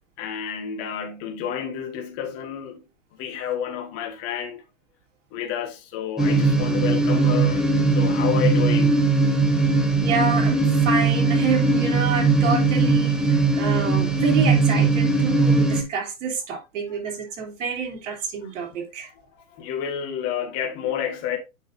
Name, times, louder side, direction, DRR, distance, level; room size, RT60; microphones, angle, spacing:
voice 1, 0.2-2.8 3.2-4.6 5.3-9.1 19.5-21.4, left 9 dB, 35° left, 1.8 m, -30 dB
sound 1, 6.2-15.8, right 3 dB, ahead, 1.2 m, -20 dB
voice 2, 10.0-19.1, right 5 dB, 55° right, 3.6 m, -28 dB
9.1 x 6.2 x 2.7 m
figure-of-eight pair, 115°, 43 cm